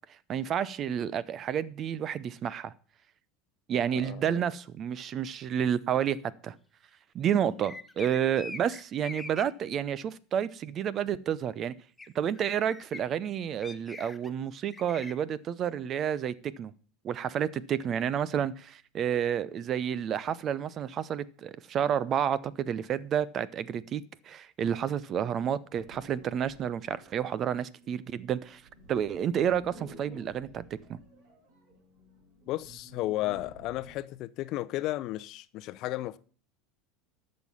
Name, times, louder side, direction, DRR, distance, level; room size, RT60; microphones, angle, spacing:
voice 1, 0.3-2.7 3.7-6.2 6.4-6.5 7.1-11.7 12.1-16.7 17.0-28.6 28.9-30.6 30.9-31.0, right 9 dB, 40° right, 0.7 m, -30 dB
voice 2, 3.9-4.5 32.5-36.2, left 16 dB, 55° left, 0.6 m, -34 dB
sound 1, 7.6-9.4 12.0-12.1 12.3-13.0 13.6-14.3 14.7-15.1, left 3 dB, 10° left, 1.1 m, -43 dB
sound 2, 25.6-34.1, right 2 dB, 65° right, 5.8 m, -53 dB
12.0 x 6.6 x 5.6 m
hypercardioid pair, 85°, 0 cm